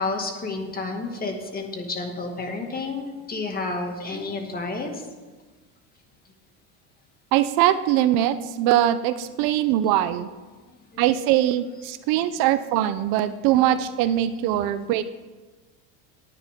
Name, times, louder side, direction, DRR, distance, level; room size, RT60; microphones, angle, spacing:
voice 1, 0.0-4.9 9.6-9.7 10.9-11.1 14.6-14.7, left 3 dB, 25° left, 3 dB, 2.2 m, -30 dB
voice 2, 7.3-10.3 11.0-15.0, right 12 dB, 60° right, 13 dB, 0.7 m, -22 dB
18.0 x 10.0 x 3.7 m, 1.3 s
supercardioid pair, 125°, 39 cm